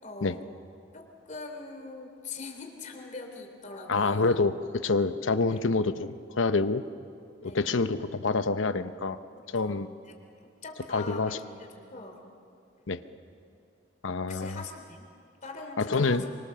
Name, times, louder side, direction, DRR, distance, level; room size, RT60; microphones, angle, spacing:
voice 1, 0.0-0.4 0.9-4.4 5.5-5.7 7.4-7.7 9.4-10.1 10.6-12.2 14.2-15.0 15.4-16.4, left 3 dB, 40° left, 3 dB, 3.1 m, -42 dB
voice 2, 3.9-6.8 7.4-9.2 9.5-9.9 10.9-11.4 12.9-13.0 14.0-14.6 15.8-16.2, left 3 dB, 85° left, 11 dB, 0.9 m, -27 dB
25.5 x 24.5 x 7.0 m, 2.5 s
head